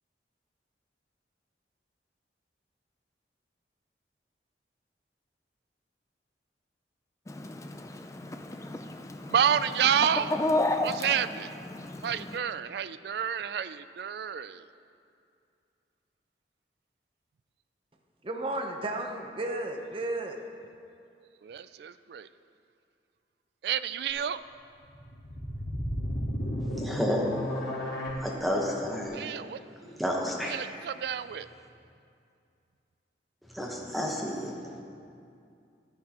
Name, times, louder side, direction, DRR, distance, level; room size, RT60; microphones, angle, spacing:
Chicken rooster, 7.3-12.4, left 2 dB, 15° left, 0.4 m, -32 dB
voice 1, 9.3-10.4 10.8-11.5 12.0-14.7 21.4-22.3 23.6-24.4 29.1-29.6 30.4-31.5, right 8 dB, 65° right, 14 dB, 0.3 m, -29 dB
voice 2, 18.2-20.5, right 1 dB, 30° right, 3 dB, 0.8 m, -33 dB
sound 1, 24.8-28.1, equal, 75° left, 1.9 m, -33 dB
voice 3, 26.8-27.4 28.2-29.2 29.8-30.6 33.5-34.8, left 1 dB, ahead, -2 dB, 1.1 m, -31 dB
13.0 x 9.6 x 2.9 m, 2.5 s
head